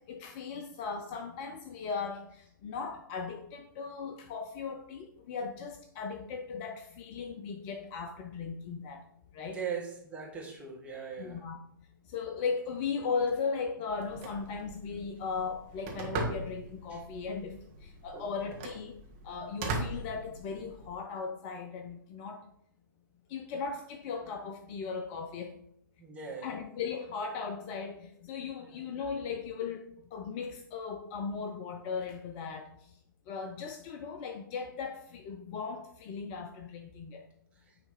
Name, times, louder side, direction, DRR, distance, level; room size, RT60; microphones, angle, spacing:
voice 1, 0.1-9.0 9.3-9.6 11.2-11.6 12.1-19.0 19.2-22.4 23.3-25.6 26.4-32.9 33.3-37.3, left 5 dB, 30° left, 6 dB, 0.6 m, -37 dB
voice 2, 9.5-11.4 16.9-17.0 18.1-18.3 26.0-26.5 28.7-28.8, right 6 dB, 10° right, -3 dB, 1.8 m, -40 dB
Telephone, 13.9-20.9, right 2 dB, 35° right, 1.7 m, -40 dB
9.7 x 3.5 x 4.2 m, 0.72 s
figure-of-eight pair, 120°, 11 cm